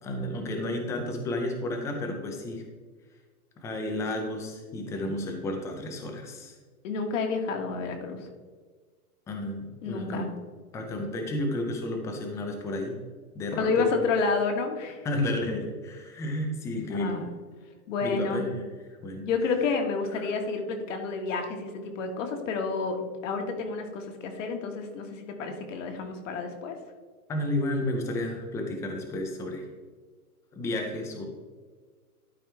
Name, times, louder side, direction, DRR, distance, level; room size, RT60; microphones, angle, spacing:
voice 1, 0.0-2.6 3.6-6.6 9.3-10.3 10.7-13.0 13.3-13.9 15.0-17.3 18.0-18.7 19.0-19.3 20.1-20.3 27.3-29.7 30.5-31.2, left 1 dB, 5° left, 2 dB, 0.5 m, -32 dB
voice 2, 6.8-8.2 9.8-10.3 13.6-15.0 17.0-17.3 17.9-18.4 19.2-26.7, left 4 dB, 55° left, 4 dB, 1.7 m, -29 dB
12.0 x 4.9 x 3.4 m, 1.5 s
hypercardioid pair, 150°, 44 cm